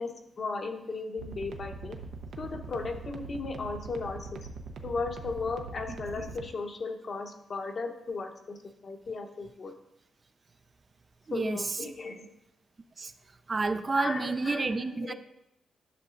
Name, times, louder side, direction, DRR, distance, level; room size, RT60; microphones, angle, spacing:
voice 1, 0.0-2.0 2.4-4.4 4.8-8.6 8.8-9.7 11.3-12.3 13.9-15.1, left 3 dB, 45° left, 4 dB, 0.9 m, -36 dB
sound 1, 1.2-6.5, right 4 dB, 85° right, 0.7 m, -42 dB
voice 2, 11.3-11.8 13.0-13.1 13.5-15.1, right 3 dB, 35° right, 10 dB, 0.3 m, -30 dB
11.0 x 6.5 x 2.5 m, 0.84 s
cardioid pair, 105°, 0 cm